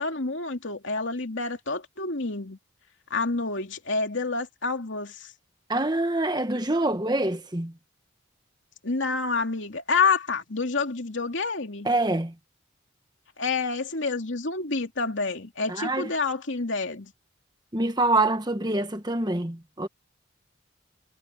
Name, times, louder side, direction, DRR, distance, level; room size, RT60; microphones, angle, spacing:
voice 1, 0.0-2.6 3.1-5.3 8.8-11.9 13.4-17.1, left 4 dB, 70° left, 2.6 m, -28 dB
voice 2, 5.7-7.7 11.8-12.3 15.7-16.1 17.7-19.9, right 2 dB, 20° right, 1.4 m, -25 dB
head